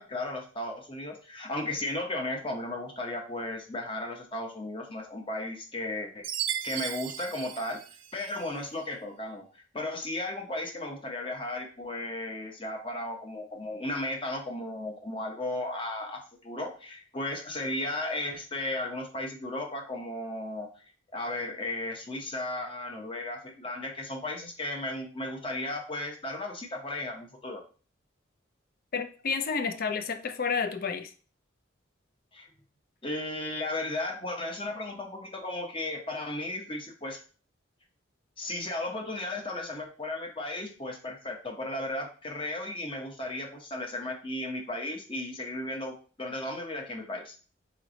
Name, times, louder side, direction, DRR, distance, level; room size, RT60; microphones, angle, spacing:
voice 1, 0.0-6.2 6.6-7.8 8.1-20.7 21.1-27.6 32.3-32.5 33.0-37.2 38.4-47.3, left 1 dB, 25° left, 2 dB, 0.8 m, -35 dB
Chime, 6.2-8.6, right 10 dB, 75° right, 0.5 m, -36 dB
voice 2, 28.9-31.1, left 5 dB, 45° left, 8 dB, 0.4 m, -30 dB
4.0 x 3.2 x 3.8 m, 0.39 s
head